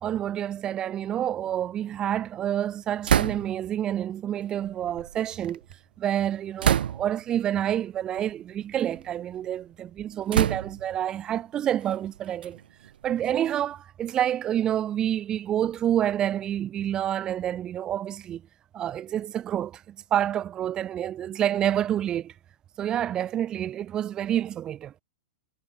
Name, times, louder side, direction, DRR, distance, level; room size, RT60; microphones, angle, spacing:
voice 1, 0.0-5.6 6.0-12.6 13.0-18.4 18.7-22.3 22.8-24.9, right 11 dB, 15° right, 0.9 m, -28 dB
sound 1, 3.0-3.7 4.6-5.7 6.6-7.3 8.1-8.3 8.8-9.5 10.3-11.0 11.8-13.7, right 9 dB, 85° right, 1.1 m, -28 dB
supercardioid pair, 175°, 5 cm